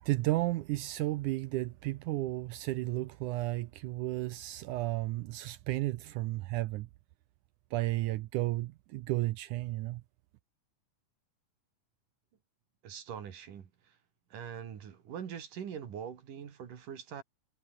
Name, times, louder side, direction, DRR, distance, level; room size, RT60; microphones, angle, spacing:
voice 1, 0.0-6.9 7.7-10.0, right 17 dB, 80° right, 1.8 m, -33 dB
voice 2, 12.8-14.0 14.3-17.2, right 8 dB, 65° right, 3.8 m, -43 dB
omnidirectional pair, 4.2 m